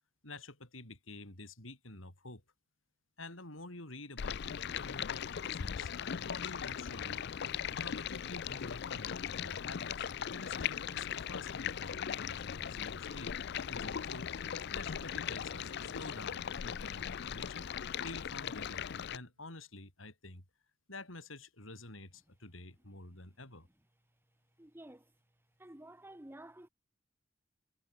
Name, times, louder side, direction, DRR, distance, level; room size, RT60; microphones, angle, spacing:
voice 1, 0.2-2.4 3.2-7.3 7.8-14.3 14.7-17.7 18.0-20.4 20.9-23.7, left 2 dB, 90° left, 7.8 m, -49 dB
Stream, 4.2-19.2, left 8 dB, 60° left, 0.5 m, -39 dB
sound 1, 14.2-19.5, right 2 dB, 85° right, 5.6 m, -63 dB
voice 2, 24.6-25.1 25.6-26.7, right 1 dB, 10° right, 1.1 m, -52 dB
head